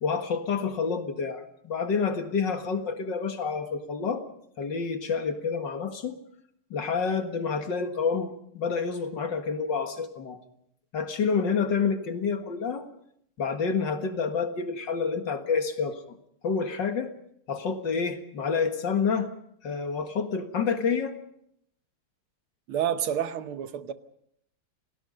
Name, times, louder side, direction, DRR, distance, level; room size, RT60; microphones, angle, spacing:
voice 1, 0.0-4.2 4.6-6.2 6.7-10.4 10.9-12.9 13.4-16.2 16.4-17.1 17.5-19.3 19.6-21.1, left 5 dB, 55° left, 2.3 m, -28 dB
voice 2, 22.7-23.9, right 9 dB, 75° right, 1.9 m, -29 dB
28.5 x 18.0 x 5.4 m
omnidirectional pair, 2.4 m